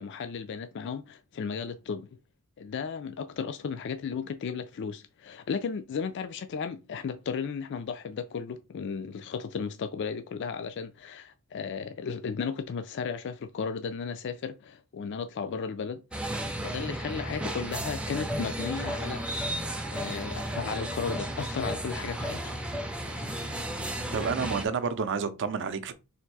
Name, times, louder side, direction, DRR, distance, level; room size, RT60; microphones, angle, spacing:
voice 1, 0.0-2.1 2.6-16.0 16.6-19.4 19.9-22.5, left 6 dB, 55° left, 0.3 m, -35 dB
sound 1, 16.1-24.6, right 1 dB, 5° right, 0.4 m, -33 dB
voice 2, 24.1-25.9, right 5 dB, 55° right, 0.5 m, -29 dB
3.5 x 2.6 x 4.6 m
head